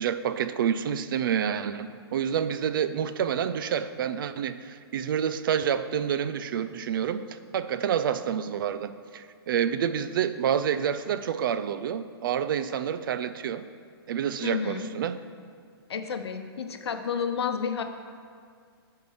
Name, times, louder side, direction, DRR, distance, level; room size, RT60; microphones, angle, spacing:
voice 1, 0.0-13.6 14.1-15.2, right 8 dB, 55° right, 12 dB, 0.4 m, -28 dB
voice 2, 14.4-14.9 15.9-17.8, left 6 dB, 80° left, 7 dB, 0.8 m, -30 dB
9.5 x 4.5 x 5.6 m, 2.1 s
hypercardioid pair, 150°, 13 cm